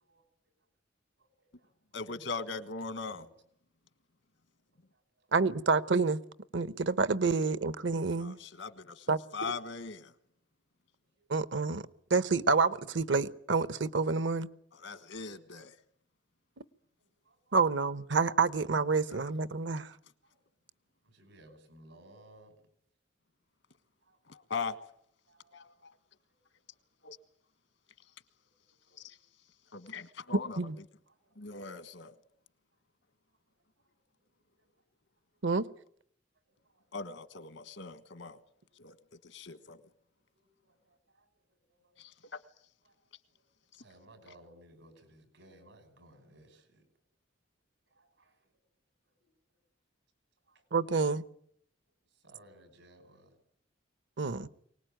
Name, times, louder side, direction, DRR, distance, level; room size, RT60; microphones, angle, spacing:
voice 1, 1.9-3.3 8.2-9.1 9.3-10.1 14.8-15.7 24.3-24.8 25.5-25.9 27.0-27.2 29.0-29.2 29.7-30.6 31.4-32.2 36.9-38.4 38.8-38.9 39.2-39.8 42.0-42.1, left 4 dB, 85° left, 1.6 m, -40 dB
voice 2, 5.3-6.2 6.5-8.4 9.1-9.5 11.3-14.5 17.5-19.9 30.3-30.8 35.4-35.7 50.7-51.2 54.2-54.5, right 4 dB, 70° right, 0.9 m, -28 dB
voice 3, 21.0-22.5 24.1-24.2 25.3-25.7 28.9-29.0 29.8-30.0 36.8-36.9 39.6-39.7 40.6-41.3 41.7-41.8 42.3-42.4 42.9-43.0 43.8-46.8 47.9-48.3 50.5-50.6 52.2-53.3, right 1 dB, 90° right, 5.6 m, -58 dB
24.0 x 19.0 x 9.1 m
head